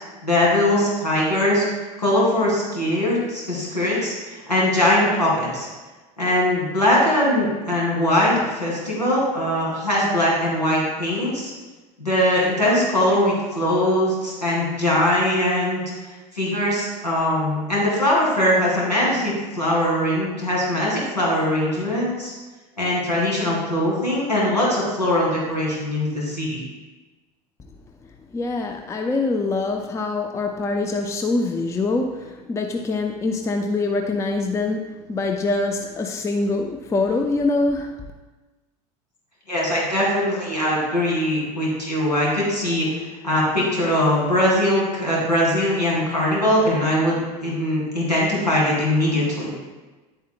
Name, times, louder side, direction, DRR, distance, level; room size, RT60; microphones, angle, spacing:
voice 1, 0.2-1.6 2.0-5.7 6.2-11.5 12.0-15.8 16.3-22.3 22.8-26.6 39.5-42.9 43.2-49.5, left 1 dB, 90° left, -5 dB, 2.7 m, -21 dB
voice 2, 28.3-38.1, left 3 dB, 15° left, 4 dB, 0.5 m, -24 dB
10.0 x 8.1 x 2.2 m, 1.2 s
figure-of-eight pair, 75°, 21 cm